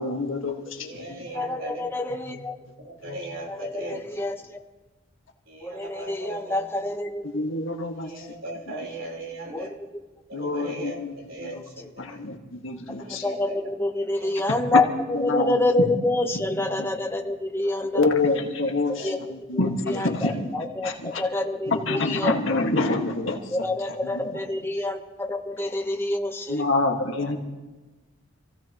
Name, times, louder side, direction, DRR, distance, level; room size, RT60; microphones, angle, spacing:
voice 1, 0.0-1.3 3.1-3.2 7.3-8.3 10.3-11.1 11.4-11.6 12.0-13.2 14.7-14.8 15.1-15.6 16.8-16.9 17.9-20.5 20.8-21.2 21.7-23.4 24.1-24.3 26.5-27.4, left 2 dB, 75° left, 1 dB, 1.8 m, -26 dB
voice 2, 0.8-2.1 2.8-4.0 5.5-6.6 8.0-9.7 10.3-12.2 13.0-13.7 14.2-14.4 19.0-19.2 20.2-20.4 22.6-22.7 24.4-24.9 27.1-27.4, right 1 dB, 70° right, -1 dB, 4.3 m, -39 dB
voice 3, 1.3-2.5 3.5-4.6 5.6-7.2 9.5-9.7 13.1-18.1 19.0-19.2 19.5-22.3 23.5-26.6, left 2 dB, 10° left, 4 dB, 1.1 m, -27 dB
28.0 x 16.0 x 3.1 m, 1.2 s
head